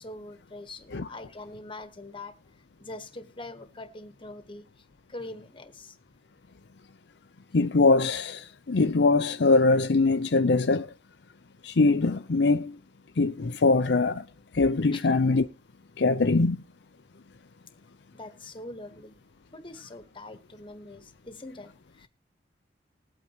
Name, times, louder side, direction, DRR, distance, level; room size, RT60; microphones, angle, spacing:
voice 1, 0.0-2.4 2.8-6.0 14.9-15.1 18.1-19.2 19.5-22.1, left 2 dB, 30° left, 1.3 m, -43 dB
voice 2, 7.5-10.9 11.6-12.8 13.2-14.2 14.5-15.4 16.0-16.6, left 3 dB, 75° left, 0.6 m, -22 dB
20.5 x 8.6 x 2.9 m
head